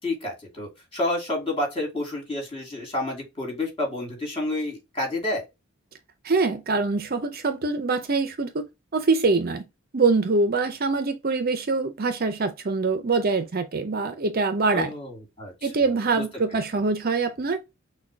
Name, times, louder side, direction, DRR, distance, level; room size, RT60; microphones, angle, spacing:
voice 1, 0.0-5.4 14.7-15.7 16.1-16.2 16.5-16.6, left 2 dB, 25° left, 2.6 m, -29 dB
voice 2, 6.2-8.6 8.9-9.6 9.9-14.9 15.6-17.6, right 3 dB, 45° right, 0.6 m, -24 dB
6.3 x 2.3 x 3.3 m
head